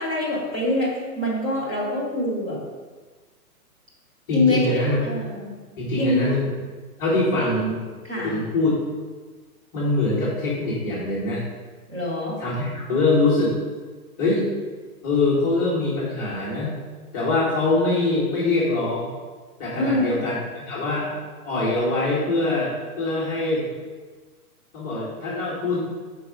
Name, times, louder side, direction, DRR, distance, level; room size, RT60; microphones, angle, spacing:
voice 1, 0.0-2.6 4.3-5.5 6.0-6.3 8.0-8.4 11.9-12.4 19.8-20.2, left 1 dB, 15° right, -6 dB, 1.4 m, -24 dB
voice 2, 4.3-5.0 5.8-6.5 7.0-7.8 8.1-8.8 9.7-11.4 12.4-13.5 14.2-14.5 15.0-16.7 17.1-19.1 19.6-21.1 21.4-23.6 24.7-25.8, left 2 dB, 15° left, -10 dB, 1.1 m, -23 dB
6.6 x 4.8 x 5.1 m, 1.4 s
hypercardioid pair, 175°, 46 cm